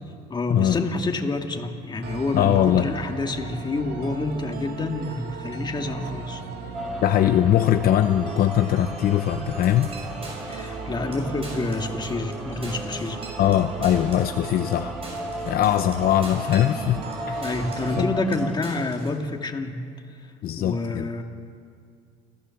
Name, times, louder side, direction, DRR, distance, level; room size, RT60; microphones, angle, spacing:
voice 1, 0.3-6.4 10.5-13.2 17.4-19.8 20.6-21.2, left 2 dB, 25° left, 4 dB, 2.0 m, -28 dB
sound 1, 2.0-18.0, right 5 dB, 70° right, 2.7 m, -37 dB
voice 2, 2.3-2.9 7.0-9.9 13.4-14.9 15.5-17.0 17.3-17.5 18.0-18.1 20.4-21.1, left 11 dB, 60° left, 8 dB, 0.8 m, -21 dB
sound 2, 6.7-18.6, left 1 dB, ahead, 1.4 m, -37 dB
sound 3, 9.6-10.8 11.1-11.2 11.4-12.4 12.6-17.2 17.4-18.0 18.3-19.2, right 2 dB, 35° right, 6.5 m, -43 dB
29.0 x 15.0 x 7.1 m, 2.2 s
cardioid pair, 110°, 17 cm